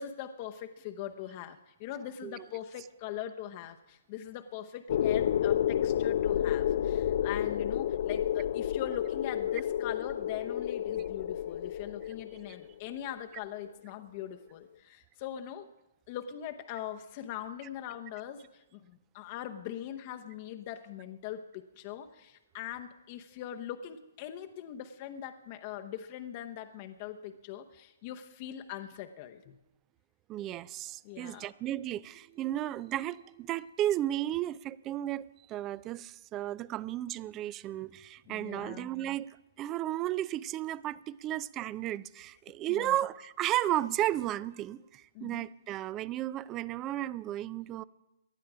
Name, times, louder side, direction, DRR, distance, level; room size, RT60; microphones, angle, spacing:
voice 1, 0.0-15.7 16.1-29.6 31.0-31.5 38.3-38.9 42.7-43.0 45.1-45.4, left 11 dB, 35° left, 6 dB, 0.8 m, -41 dB
sound 1, 4.9-12.7, left 10 dB, 55° left, 0.4 m, -30 dB
voice 2, 30.3-39.3 39.6-47.8, right 13 dB, 25° right, 21 dB, 0.4 m, -34 dB
18.5 x 11.5 x 4.9 m, 0.96 s
hypercardioid pair, 140°, 0 cm